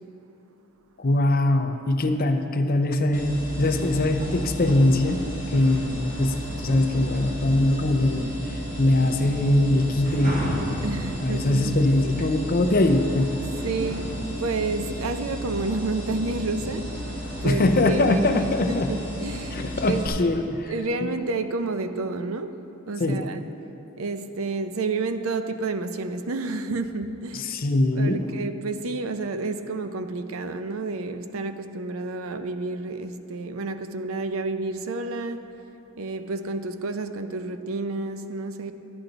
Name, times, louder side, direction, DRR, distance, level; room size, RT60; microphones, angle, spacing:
voice 1, 1.0-5.2 5.5-13.4 17.4-18.9 19.5-20.7 21.0-21.1 23.0-23.2 27.3-28.3, left 1 dB, 45° left, 7 dB, 0.6 m, -22 dB
sound 1, 3.1-20.1, equal, 40° right, 1.7 m, -33 dB
voice 2, 10.8-11.8 12.2-12.3 13.6-17.0 17.4-20.0 20.7-22.6 22.9-23.4 24.0-27.5 27.9-35.4 36.0-38.7, right 3 dB, 85° right, 9 dB, 0.6 m, -30 dB
11.5 x 10.0 x 4.0 m, 2.9 s
head